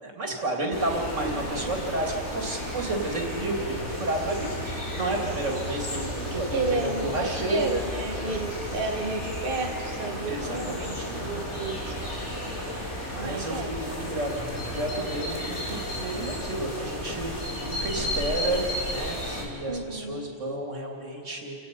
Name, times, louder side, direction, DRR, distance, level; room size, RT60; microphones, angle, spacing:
voice 1, 0.0-7.6 8.2-8.3 10.3-11.7 13.0-21.5, right 1 dB, 85° right, 0 dB, 3.1 m, -31 dB
sound 1, 0.7-19.4, equal, 70° left, 3.5 m, -33 dB
voice 2, 1.2-1.5 6.5-12.1 12.8-12.9 13.2-13.7 19.7-20.3, right 2 dB, 50° right, 2 dB, 1.3 m, -32 dB
29.0 x 17.5 x 5.4 m, 2.2 s
omnidirectional pair, 1.2 m